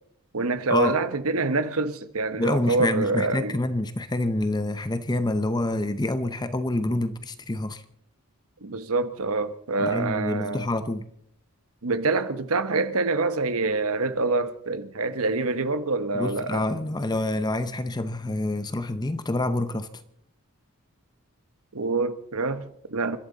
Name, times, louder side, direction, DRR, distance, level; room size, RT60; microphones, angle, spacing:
voice 1, 0.3-3.6 8.6-10.7 11.8-16.6 21.7-23.2, right 3 dB, 75° right, 1.1 m, -26 dB
voice 2, 2.4-7.8 9.8-11.1 16.1-19.9, left 1 dB, 20° left, 0.6 m, -27 dB
29.0 x 12.5 x 4.0 m
head